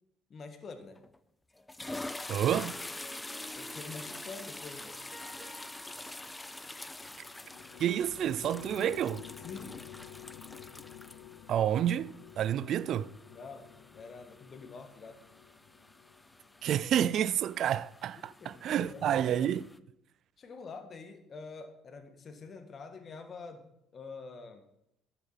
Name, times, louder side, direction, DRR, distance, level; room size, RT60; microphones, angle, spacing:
voice 1, 0.3-1.0 3.6-5.0 9.4-9.9 13.3-15.2 18.2-18.6 18.9-19.4 20.4-24.6, left 4 dB, 45° left, 1.8 m, -46 dB
sound 1, 1.0-1.2 1.6-19.8, left 2 dB, 15° left, 0.6 m, -46 dB
Harp, 2.1-7.9, equal, ahead, 1.3 m, -53 dB
voice 2, 2.3-2.8 7.8-9.3 11.5-13.1 16.6-19.6, right 10 dB, 60° right, 0.4 m, -29 dB
sound 2, 7.0-16.7, left 12 dB, 75° left, 0.7 m, -51 dB
11.5 x 6.9 x 5.8 m
hypercardioid pair, 65°, 0 cm